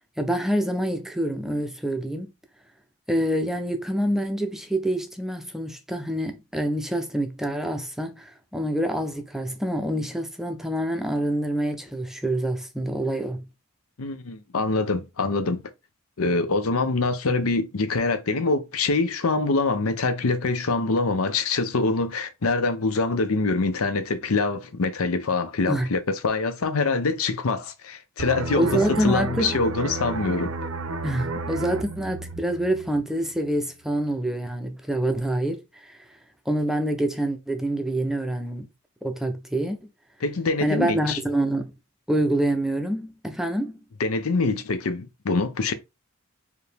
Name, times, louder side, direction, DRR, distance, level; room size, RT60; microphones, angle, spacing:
voice 1, 0.2-2.3 3.1-13.4 25.7-25.9 28.5-29.6 31.0-36.2 36.5-38.7 39.0-39.9 40.6-41.7 42.1-43.8, right 1 dB, ahead, 0.5 m, -26 dB
voice 2, 14.0-15.6 16.2-30.5 40.2-41.2 44.0-45.7, left 3 dB, 90° left, 0.7 m, -24 dB
sound 1, 28.2-33.6 33.9-34.1, right 3 dB, 90° right, 0.7 m, -33 dB
4.8 x 2.7 x 3.3 m
head